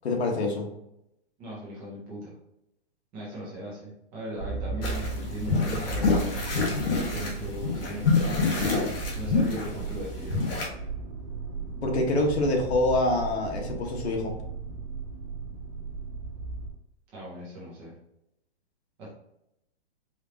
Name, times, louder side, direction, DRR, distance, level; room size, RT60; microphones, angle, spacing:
voice 1, 0.0-0.7 11.8-14.3, left 2 dB, 80° left, 2 dB, 1.3 m, -26 dB
voice 2, 1.4-2.4 3.1-6.3 7.0-8.8 9.1-10.4 17.1-17.9 19.0-19.1, equal, 5° right, -7 dB, 0.4 m, -39 dB
Motor vehicle (road), 4.3-16.7, right 4 dB, 40° right, 1.0 m, -36 dB
sound 1, 4.8-10.7, left 4 dB, 60° left, 1.4 m, -27 dB
4.9 x 3.0 x 2.8 m, 0.82 s
hypercardioid pair, 170°, 33 cm